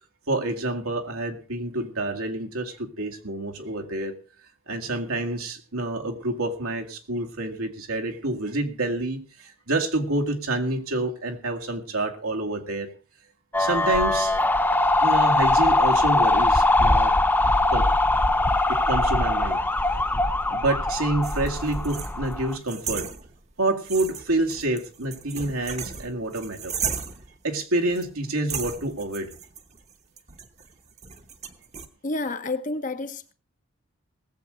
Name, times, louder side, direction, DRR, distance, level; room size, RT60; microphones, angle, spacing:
voice 1, 0.3-4.1 4.7-12.9 13.6-14.3 15.0-17.1 17.7-17.9 18.7-19.6 20.1-23.1 23.6-26.8 27.4-29.3, right 2 dB, 85° right, 2.2 m, -28 dB
sound 1, 13.5-22.6, left 2 dB, 10° left, 0.6 m, -21 dB
sound 2, 21.2-23.6 23.9-27.4 27.9-28.1 28.5-31.9, right 6 dB, 30° right, 1.0 m, -36 dB
voice 2, 32.0-33.3, left 2 dB, 35° left, 0.9 m, -29 dB
19.0 x 8.0 x 5.0 m
head